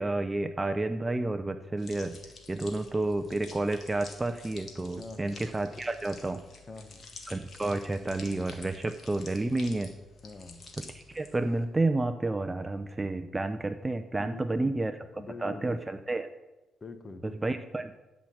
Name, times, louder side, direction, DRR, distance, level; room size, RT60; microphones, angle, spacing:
voice 1, 0.0-2.2 2.5-6.4 7.3-9.9 10.9-15.0 15.4-16.3 17.2-18.0, right 2 dB, 15° right, 10 dB, 0.6 m, -30 dB
sound 1, 1.8-11.6, left 3 dB, 45° left, 2.0 m, -50 dB
voice 2, 5.0-5.4 6.7-7.1 10.2-10.7 14.2-14.8 15.1-16.0 16.8-17.6, left 3 dB, 30° left, 9 dB, 1.3 m, -44 dB
10.5 x 5.9 x 7.7 m, 1.1 s
cardioid pair, 90°, 0 cm